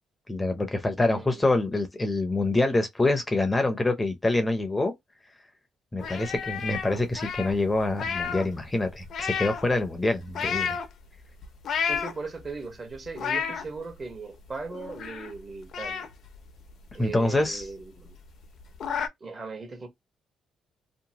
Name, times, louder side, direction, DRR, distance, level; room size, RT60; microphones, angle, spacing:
voice 1, 0.3-4.9 5.9-10.8 17.0-17.6, left 2 dB, 20° left, 0.6 m, -26 dB
voice 2, 1.1-1.5 6.0-6.3 10.4-10.5 11.9-16.1 16.9-18.2 19.2-19.9, right 4 dB, 35° right, 1.1 m, -39 dB
sound 1, 6.0-8.5 8.8-9.7 10.3-10.9 11.4-12.4 12.9-13.7 14.1-14.2 14.5-15.4 15.7-17.3 17.6-17.7 18.1-18.2 18.4-19.1, left 6 dB, 65° left, 0.5 m, -31 dB
2.8 x 2.2 x 2.7 m
cardioid pair, 90°, 0 cm